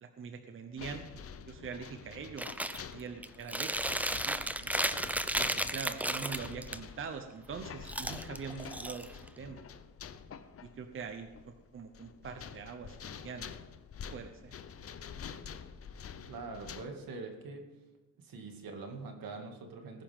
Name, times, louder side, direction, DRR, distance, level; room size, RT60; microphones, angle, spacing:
voice 1, 0.0-2.5 2.9-4.7 5.4-9.6 10.6-13.7 14.1-14.5, right 6 dB, 35° right, 6 dB, 0.8 m, -44 dB
sound 1, 0.8-16.8, left 7 dB, 40° left, 0.7 m, -47 dB
Chewing mastication, 2.4-2.8 3.2-6.8 7.8-9.4, right 1 dB, 5° right, 0.3 m, -34 dB
voice 2, 16.3-17.6 18.2-20.0, right 3 dB, 70° right, 3 dB, 2.4 m, -43 dB
19.0 x 10.5 x 3.7 m, 1.2 s
wide cardioid pair, 165°, 36 cm